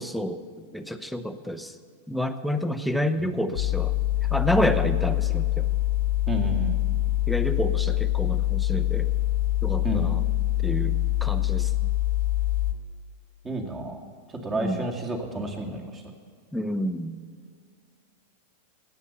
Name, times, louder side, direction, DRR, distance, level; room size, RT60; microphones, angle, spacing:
voice 1, 0.0-1.7 2.1-3.9 4.3-5.7 7.3-9.1 9.6-10.2 10.6-11.7 14.5-14.9 16.5-17.2, equal, ahead, 7 dB, 0.9 m, -29 dB
sound 1, 3.5-12.7, left 15 dB, 65° left, 1.3 m, -25 dB
voice 2, 6.3-6.8 9.8-10.1 13.4-14.0 14.3-16.0, right 2 dB, 20° right, 2 dB, 2.2 m, -31 dB
18.0 x 8.0 x 7.0 m, 2.1 s
hypercardioid pair, 100°, 0 cm